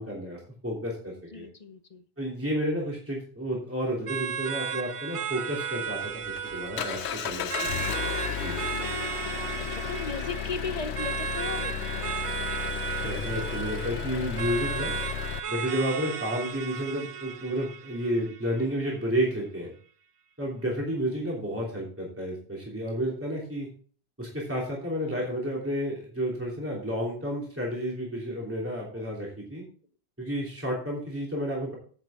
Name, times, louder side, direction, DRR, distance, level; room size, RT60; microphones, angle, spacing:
voice 1, 0.0-1.5 2.2-7.8 8.3-8.7 13.0-14.9 15.5-19.7 20.4-23.7 24.2-29.6 30.2-31.8, equal, 10° right, -3 dB, 3.0 m, -31 dB
voice 2, 1.3-2.0 8.7-12.2 28.8-29.0, left 4 dB, 40° left, 10 dB, 0.9 m, -38 dB
sound 1, 4.1-19.0, right 7 dB, 55° right, 0.4 m, -35 dB
Engine, 5.9-15.4, left 9 dB, 85° left, 0.9 m, -34 dB
10.5 x 7.9 x 3.5 m, 0.43 s
omnidirectional pair, 1.1 m